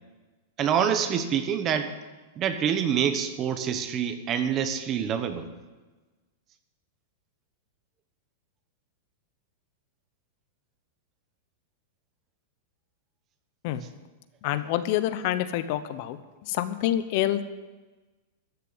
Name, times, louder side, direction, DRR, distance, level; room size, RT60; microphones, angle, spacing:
voice 1, 0.6-1.9 2.4-5.5, right 8 dB, 25° right, 9 dB, 1.1 m, -26 dB
voice 2, 14.4-16.2 16.5-17.4, left 12 dB, 50° left, 12 dB, 0.8 m, -27 dB
14.0 x 6.9 x 9.7 m, 1.2 s
supercardioid pair, 150°, 0 cm